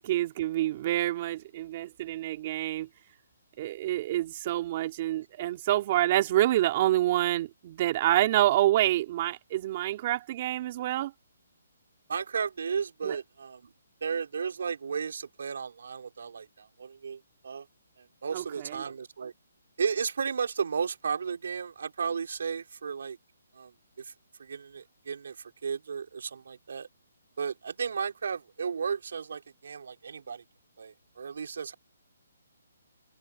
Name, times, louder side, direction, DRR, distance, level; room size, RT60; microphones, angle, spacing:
voice 1, 0.0-2.9 3.6-11.1 13.0-13.2 18.3-18.8, right 14 dB, 30° right, 3.5 m, -27 dB
voice 2, 12.1-13.7 14.0-17.7 18.0-19.3 19.8-23.2 23.5-24.1 24.4-26.9 27.4-30.4 30.8-31.7, right 6 dB, 65° right, 3.6 m, -34 dB
hypercardioid pair, 165°, 0 cm